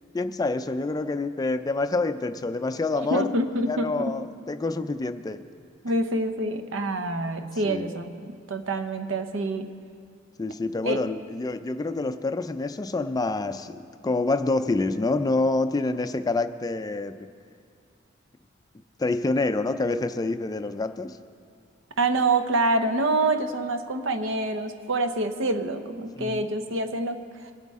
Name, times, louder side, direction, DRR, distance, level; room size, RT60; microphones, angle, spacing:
voice 1, 0.1-3.3 3.7-5.4 7.6-7.9 10.4-17.3 19.0-21.2 26.2-26.5, left 3 dB, 20° left, 10 dB, 0.3 m, -27 dB
voice 2, 3.0-4.1 5.8-9.7 10.9-11.0 22.0-27.2 27.5-27.6, right 2 dB, 70° right, 8 dB, 0.8 m, -26 dB
21.5 x 8.1 x 3.6 m, 2.2 s
head